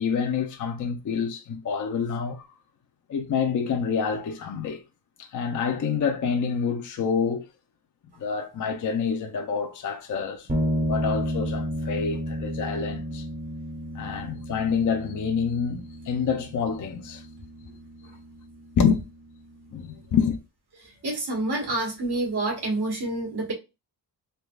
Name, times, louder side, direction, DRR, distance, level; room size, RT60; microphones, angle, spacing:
voice 1, 0.0-2.5 3.1-4.8 5.2-7.4 8.2-10.5 10.8-13.3 13.9-17.2 18.8-19.0 19.7-20.4, left 6 dB, 45° left, 0.6 m, -27 dB
sound 1, 10.5-20.0, equal, 20° right, 0.8 m, -32 dB
voice 2, 20.8-23.5, right 2 dB, 65° right, 1.6 m, -28 dB
3.5 x 2.9 x 2.3 m
wide cardioid pair, 125°, 42 cm